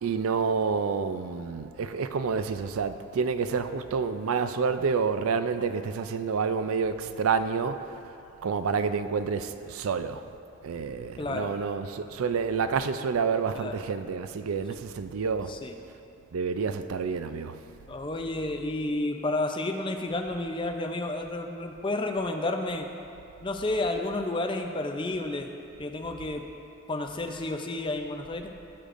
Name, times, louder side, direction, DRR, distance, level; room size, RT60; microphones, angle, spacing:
voice 1, 0.0-7.8 8.4-10.2 10.6-15.5 16.3-17.5, right 5 dB, 80° right, 0.4 m, -28 dB
voice 2, 11.2-11.5 13.5-13.8 15.5-15.7 17.9-22.9 23.4-25.5 25.8-26.4 26.9-28.5, left 2 dB, 25° left, 0.5 m, -31 dB
15.5 x 6.5 x 2.5 m
head